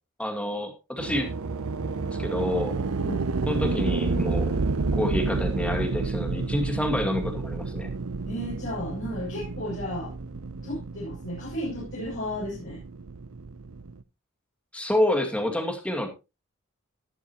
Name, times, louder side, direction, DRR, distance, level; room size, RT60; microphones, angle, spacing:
voice 1, 0.2-1.3 2.2-2.7 3.5-4.5 4.9-7.9 14.7-16.1, left 1 dB, 5° left, 3 dB, 2.3 m, -28 dB
sound 1, 1.0-14.0, right 3 dB, 90° right, 0.7 m, -30 dB
voice 2, 8.2-10.1 10.6-12.8, left 1 dB, 65° left, -8 dB, 6.8 m, -34 dB
19.0 x 7.0 x 3.0 m, 0.27 s
head